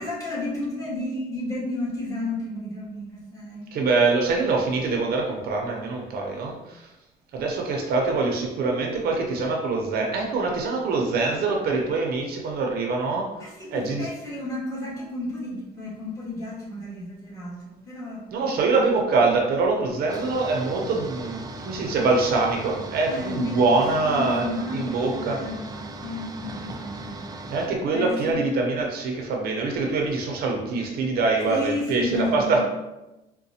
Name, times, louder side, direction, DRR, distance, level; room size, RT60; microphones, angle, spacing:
voice 1, 0.0-3.7 13.4-18.2 23.0-27.3 27.9-28.3 31.5-32.6, left 2 dB, 20° left, -7 dB, 1.4 m, -32 dB
voice 2, 3.7-6.6 7.3-13.3 13.7-14.1 18.3-25.4 27.5-32.6, right 3 dB, 65° right, 1 dB, 0.6 m, -24 dB
sound 1, 20.1-27.7, right 2 dB, 20° right, 0.3 m, -38 dB
4.0 x 2.2 x 2.7 m, 0.99 s
cardioid pair, 110°, 17 cm